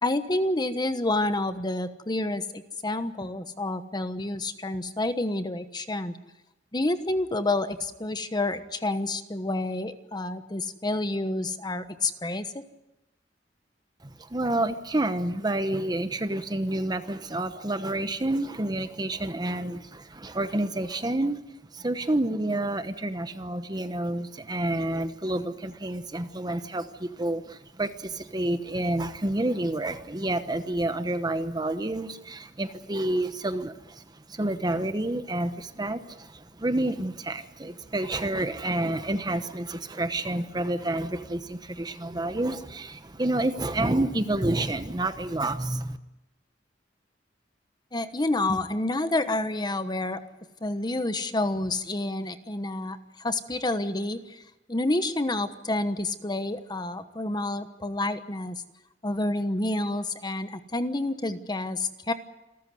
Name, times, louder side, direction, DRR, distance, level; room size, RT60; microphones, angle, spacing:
voice 1, 0.0-6.1 6.7-12.6 47.9-50.2 50.6-54.4 54.7-58.6 59.0-62.1, left 2 dB, 25° left, 10 dB, 1.2 m, -29 dB
voice 2, 14.0-21.4 21.7-46.0, right 1 dB, 25° right, 10 dB, 1.0 m, -29 dB
28.0 x 14.0 x 9.5 m, 0.96 s
head